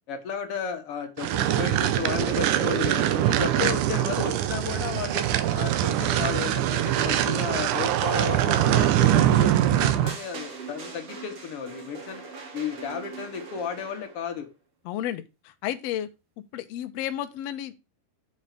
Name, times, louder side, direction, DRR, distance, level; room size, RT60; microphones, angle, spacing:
voice 1, 0.1-5.3 5.5-12.2 12.5-14.5, left 7 dB, 55° left, 1.9 m, -33 dB
sound 1, 1.2-10.2, right 12 dB, 80° right, 2.2 m, -23 dB
sound 2, 10.1-14.3, right 4 dB, 50° right, 2.6 m, -41 dB
voice 2, 14.8-16.1 16.5-17.7, left 12 dB, 70° left, 1.7 m, -32 dB
7.8 x 5.5 x 4.9 m
omnidirectional pair, 3.7 m